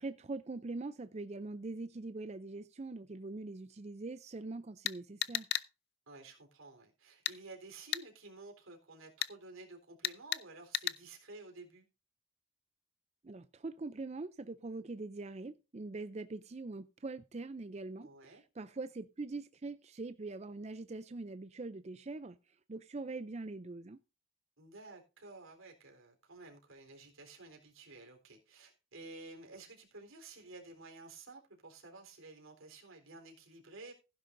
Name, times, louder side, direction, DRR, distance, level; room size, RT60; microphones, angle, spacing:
voice 1, 0.0-5.5 13.2-24.0, right 3 dB, 30° right, 0.4 m, -43 dB
sound 1, 4.9-5.7 7.3-7.4 7.9-8.0 9.2-9.3 10.0-10.4 10.7-11.0, left 11 dB, 50° left, 0.6 m, -34 dB
voice 2, 6.1-11.9 18.0-18.4 24.6-33.9, right 2 dB, 85° right, 3.9 m, -52 dB
15.5 x 10.5 x 2.6 m
head